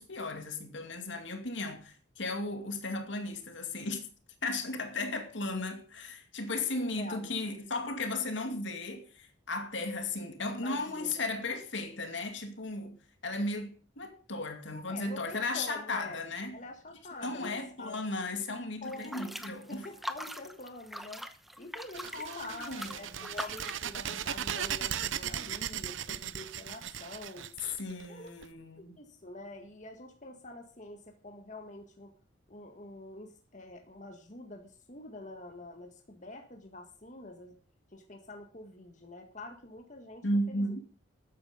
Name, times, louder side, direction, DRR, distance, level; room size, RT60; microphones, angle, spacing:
voice 1, 0.0-4.1 4.4-16.6 17.2-19.9 22.1-23.3 27.8-28.9 40.2-40.8, left 2 dB, 65° left, 2.4 m, -35 dB
voice 2, 6.7-7.3 10.6-11.3 14.7-16.3 16.5-18.0 18.8-19.4 19.7-21.2 21.6-27.5 28.1-28.3 29.0-32.1 32.5-37.6 37.9-40.7, left 2 dB, 35° left, 1.9 m, -46 dB
sound 1, 18.8-23.9, equal, ahead, 0.8 m, -42 dB
sound 2, 21.9-28.4, right 9 dB, 70° right, 0.7 m, -37 dB
13.5 x 9.7 x 5.2 m
head